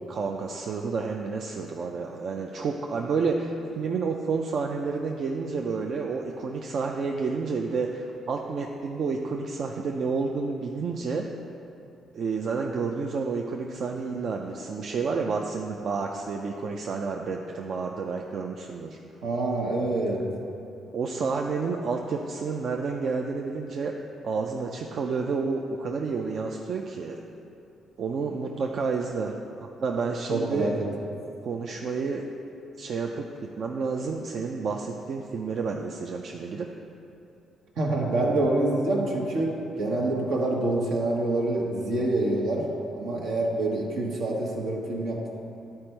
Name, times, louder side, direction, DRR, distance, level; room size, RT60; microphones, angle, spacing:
voice 1, 0.1-11.3 12.1-19.0 20.9-23.9 24.2-27.2 28.0-29.3 29.6-30.7 31.4-32.2 32.8-36.7, right 4 dB, 60° right, 2 dB, 0.4 m, -30 dB
voice 2, 19.2-20.2 30.3-30.7 37.8-39.5 39.8-42.6 42.9-45.3, right 2 dB, 80° right, -2 dB, 1.3 m, -26 dB
10.5 x 4.3 x 4.5 m, 2.8 s
cardioid pair, 90°, 0 cm